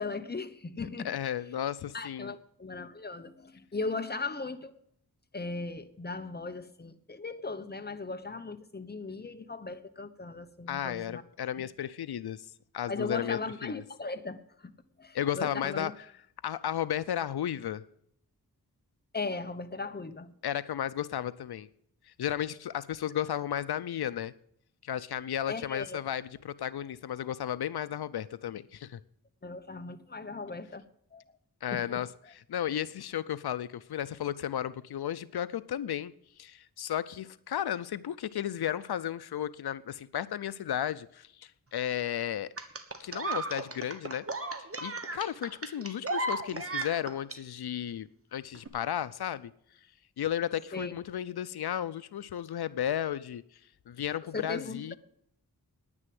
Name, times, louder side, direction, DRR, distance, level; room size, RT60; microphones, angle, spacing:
voice 1, 0.0-1.1 1.9-4.8 5.3-11.2 12.9-14.7 15.0-15.9 19.1-20.3 25.5-26.0 29.4-30.8 31.1-31.2 31.7-32.0 50.7-50.9 54.3-54.8, left 3 dB, 25° left, 1.0 m, -38 dB
voice 2, 1.0-2.3 10.7-12.5 12.7-13.8 15.1-15.9 16.4-17.8 20.4-21.7 22.1-24.3 24.8-29.0 31.6-42.5 43.0-44.3 44.8-49.5 50.2-53.4 53.9-55.0, left 10 dB, 90° left, 0.5 m, -34 dB
sound 1, 42.6-47.4 48.6-48.7, right 2 dB, 40° right, 1.4 m, -35 dB
9.9 x 9.8 x 7.7 m
wide cardioid pair, 90°, 37 cm